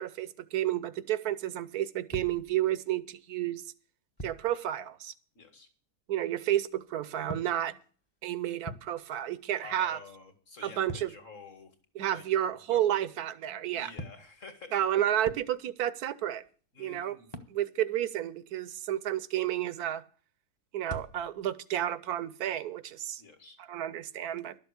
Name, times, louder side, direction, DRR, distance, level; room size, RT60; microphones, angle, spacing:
voice 1, 0.0-3.6 4.2-5.1 6.1-7.8 8.2-10.0 10.6-11.1 11.9-13.9 14.7-16.4 16.8-17.2 17.5-20.0 20.7-23.2 23.6-24.5, right 12 dB, 70° right, 1.2 m, -31 dB
sound 1, 2.1-3.1 4.2-4.5 6.7-9.4 9.7-12.4 13.9-15.9 16.3-16.7 17.3-17.6 20.8-21.5, equal, 20° left, 0.9 m, -45 dB
voice 2, 5.3-5.7 9.6-11.7 12.1-13.1 13.7-14.7 16.7-17.3 23.2-23.6, left 4 dB, 50° left, 2.3 m, -50 dB
12.0 x 7.1 x 8.1 m
omnidirectional pair, 1.8 m